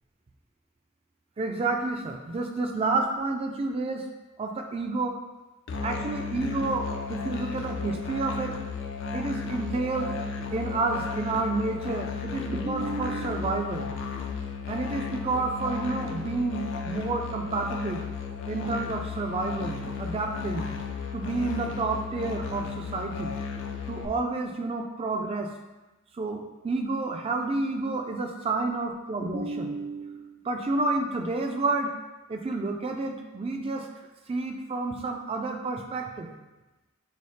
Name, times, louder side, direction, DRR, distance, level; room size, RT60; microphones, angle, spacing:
voice 1, 1.4-4.0 4.4-5.1 5.8-8.5 9.1-10.2 10.5-13.9 14.7-18.1 18.5-20.7 21.1-23.3 23.9-25.5 26.2-31.9 32.3-33.9 34.3-36.3, right 3 dB, 30° right, 3 dB, 0.3 m, -30 dB
Musical instrument, 5.7-24.1, left 5 dB, 65° left, 0.4 m, -34 dB
3.2 x 2.0 x 4.1 m, 1.1 s
head